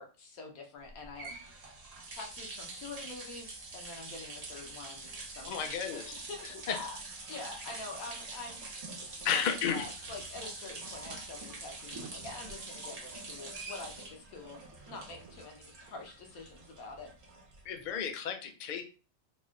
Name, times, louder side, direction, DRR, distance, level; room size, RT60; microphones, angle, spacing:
voice 1, 0.0-1.4 2.1-7.0 7.3-9.0 9.3-17.1, left 3 dB, 90° left, 2 dB, 1.3 m, -46 dB
sound 1, 0.8-17.9, right 3 dB, 40° right, 0.6 m, -45 dB
voice 2, 5.4-6.0 6.7-6.8 9.2-9.9 17.6-18.8, left 7 dB, 55° left, 5 dB, 0.5 m, -32 dB
sound 2, 6.3-6.5 6.7-9.5 10.3-11.6 11.9-14.5 14.7-15.4 15.9-16.1, right 4 dB, 70° right, 1.1 m, -56 dB
4.1 x 2.1 x 3.6 m, 0.36 s
omnidirectional pair, 1.4 m